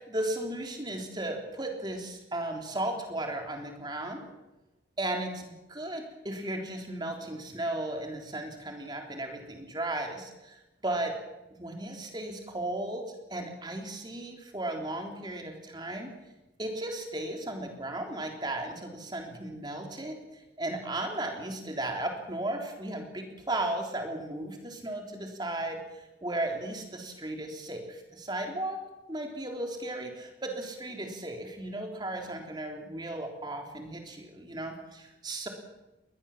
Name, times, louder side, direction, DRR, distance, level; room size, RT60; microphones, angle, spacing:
voice 1, 0.0-4.3 5.0-10.6 10.8-11.1 11.6-16.1 16.6-20.2 20.6-25.8 26.2-28.8 29.1-35.5, right 1 dB, 25° right, 3 dB, 3.5 m, -35 dB
21.5 x 19.5 x 7.3 m, 0.99 s
head